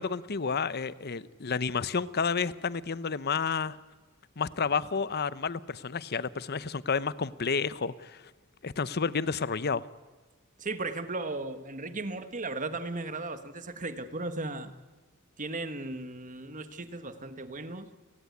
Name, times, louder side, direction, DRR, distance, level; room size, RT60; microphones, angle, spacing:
voice 1, 0.0-3.8 4.4-8.2 8.6-9.8, left 5 dB, 50° left, 17 dB, 0.8 m, -30 dB
voice 2, 10.6-14.7 15.4-17.9, right 2 dB, 40° right, 10 dB, 1.5 m, -36 dB
30.0 x 17.0 x 9.5 m, 1.3 s
head